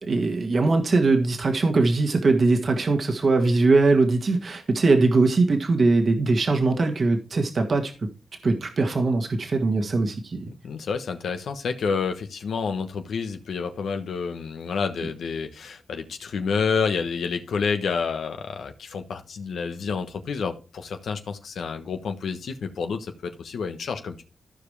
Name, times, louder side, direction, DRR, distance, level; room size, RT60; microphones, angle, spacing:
voice 1, 0.0-7.9 8.4-10.4, right 3 dB, 60° right, 1.8 m, -21 dB
voice 2, 10.6-24.2, left 5 dB, 85° left, 1.2 m, -29 dB
15.0 x 5.0 x 3.3 m
cardioid pair, 60°, 0 cm